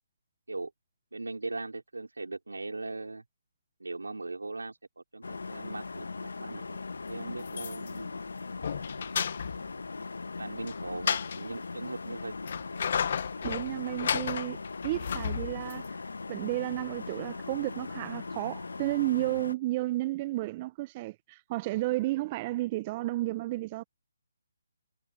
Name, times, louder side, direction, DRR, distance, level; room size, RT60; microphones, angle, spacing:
voice 1, 1.1-3.2 3.8-6.7 7.1-8.2 10.4-12.6, right 3 dB, 85° right, 5.3 m, -39 dB
sound 1, 5.2-19.6, left 4 dB, 75° left, 1.9 m, -40 dB
sound 2, 7.4-8.0 8.4-9.7 10.6-11.4 12.2-15.9, left 7 dB, 50° left, 1.7 m, -33 dB
voice 2, 13.4-15.9 16.3-23.8, right 18 dB, 30° right, 1.4 m, -32 dB
figure-of-eight pair, 145°, 0 cm